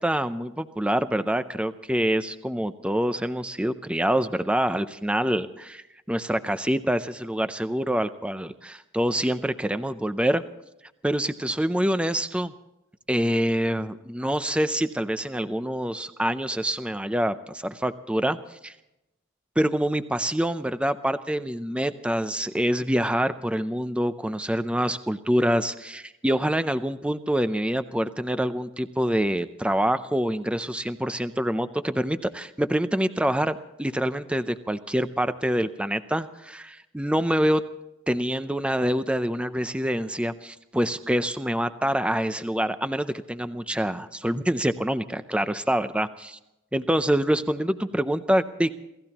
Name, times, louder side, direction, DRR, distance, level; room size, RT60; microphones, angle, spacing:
voice 1, 0.0-10.4 11.0-12.5 13.1-18.7 19.6-37.6 38.1-46.4 46.7-48.8, equal, 5° right, 10 dB, 0.5 m, -26 dB
28.5 x 16.5 x 2.9 m, 0.90 s
head